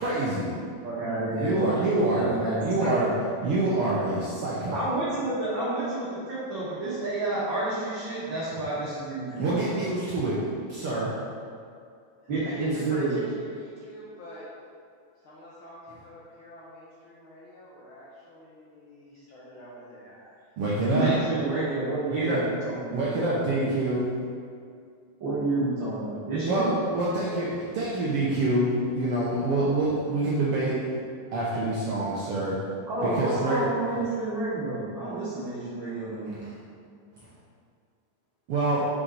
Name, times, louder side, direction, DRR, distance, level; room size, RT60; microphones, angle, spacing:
voice 1, 0.0-0.5 1.3-3.1 3.4-4.8 9.4-10.4 10.7-11.2 20.6-21.1 22.1-22.4 22.9-24.1 26.4-30.8 31.3-32.6 33.0-33.6 36.2-36.5 38.5-38.9, right 2 dB, 70° right, -7 dB, 1.3 m, -26 dB
voice 2, 0.8-1.6 2.2-3.1 4.7-9.7 12.3-13.2 20.9-23.1 25.2-26.7 32.9-36.4, right 2 dB, 45° right, -12 dB, 1.9 m, -29 dB
voice 3, 12.4-14.5 15.2-20.4, equal, 70° left, -7 dB, 1.3 m, -44 dB
6.3 x 6.2 x 4.0 m, 2.3 s
omnidirectional pair, 3.7 m